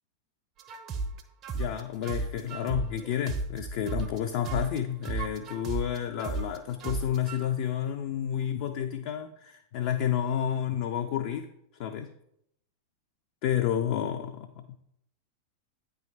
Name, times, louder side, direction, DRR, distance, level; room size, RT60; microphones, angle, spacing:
sound 1, 0.6-4.2 4.5-7.4, right 3 dB, 30° right, 0.5 m, -34 dB
voice 1, 1.5-11.5 11.8-12.1 13.4-14.8, left 9 dB, 50° left, 6 dB, 0.3 m, -30 dB
8.7 x 3.4 x 3.2 m, 0.76 s
figure-of-eight pair, 90°, 0 cm